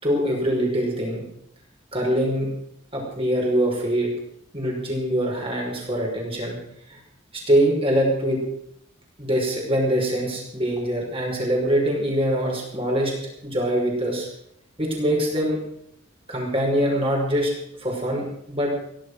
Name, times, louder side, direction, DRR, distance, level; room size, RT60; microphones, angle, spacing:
voice 1, 0.0-1.2 1.9-2.5 2.9-4.1 4.5-6.6 6.9-7.0 7.5-8.4 9.2-13.1 13.4-14.3 14.8-15.6 16.3-17.5 17.8-18.7, equal, 30° right, -1 dB, 5.8 m, -23 dB
16.5 x 12.0 x 6.3 m, 0.75 s
head